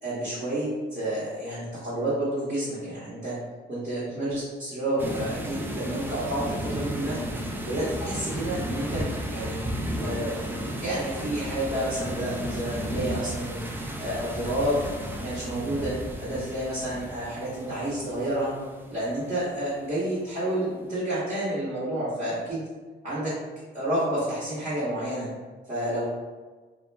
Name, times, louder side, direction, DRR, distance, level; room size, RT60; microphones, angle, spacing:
voice 1, 0.0-3.4 3.7-7.2 7.6-9.6 10.0-10.4 10.8-13.6 14.0-14.9 15.1-18.5 18.9-22.7 23.0-23.3 23.7-25.3 25.7-26.1, right 1 dB, 35° right, -11 dB, 1.0 m, -30 dB
sound 1, 5.0-19.6, equal, 10° right, 0.3 m, -34 dB
2.3 x 2.1 x 3.2 m, 1.4 s
cardioid pair, 90°, 20 cm